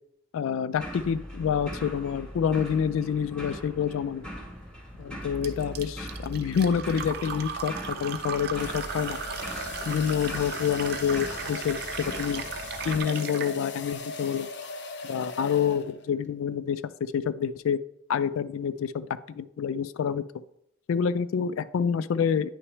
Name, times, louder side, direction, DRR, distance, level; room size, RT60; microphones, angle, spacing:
voice 1, 0.3-4.3 5.0-7.7 8.0-9.2 9.9-12.4 12.8-14.5 15.0-17.8 18.1-20.2 20.9-22.5, left 7 dB, 85° left, 15 dB, 0.3 m, -27 dB
sound 1, 0.7-13.0, equal, 5° left, 2.0 m, -41 dB
sound 2, 5.0-5.3 6.9-16.2, left 4 dB, 55° left, 0.7 m, -40 dB
Fill (with liquid), 5.4-13.5, right 7 dB, 50° right, 0.5 m, -37 dB
9.6 x 5.9 x 3.2 m, 0.77 s
head